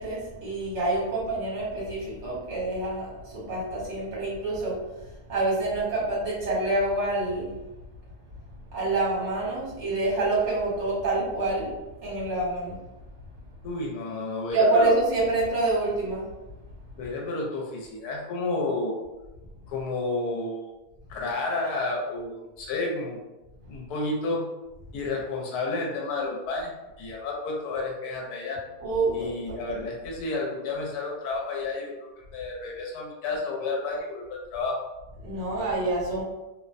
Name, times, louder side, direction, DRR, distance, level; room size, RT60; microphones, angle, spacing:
voice 1, 0.0-7.5 8.7-12.8 14.5-16.3 28.8-29.3 35.2-36.2, right 2 dB, 50° right, -6 dB, 1.2 m, -27 dB
voice 2, 13.6-14.9 17.0-19.0 19.7-20.7 21.1-23.2 23.7-24.4 24.9-28.6 29.1-34.8, left 3 dB, 85° left, -1 dB, 1.1 m, -31 dB
2.8 x 2.0 x 2.4 m, 1.0 s
omnidirectional pair, 1.6 m